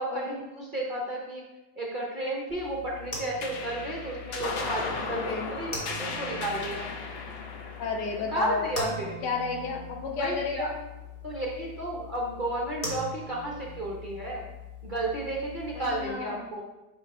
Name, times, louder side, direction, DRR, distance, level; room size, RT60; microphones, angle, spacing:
voice 1, 0.0-1.4 1.8-5.7 6.0-6.9 8.3-9.2 10.2-10.7 11.2-14.5 14.8-16.6, right 1 dB, 40° right, -2 dB, 0.8 m, -33 dB
sound 1, 2.5-16.1, left 2 dB, 30° left, 1.4 m, -41 dB
sound 2, 3.4-10.2, left 4 dB, 50° left, 0.7 m, -37 dB
voice 2, 5.1-5.5 7.8-8.9 9.2-10.7 15.7-16.5, left 5 dB, 80° left, 1 dB, 1.6 m, -32 dB
8.7 x 3.4 x 4.2 m, 1.0 s
omnidirectional pair, 1.8 m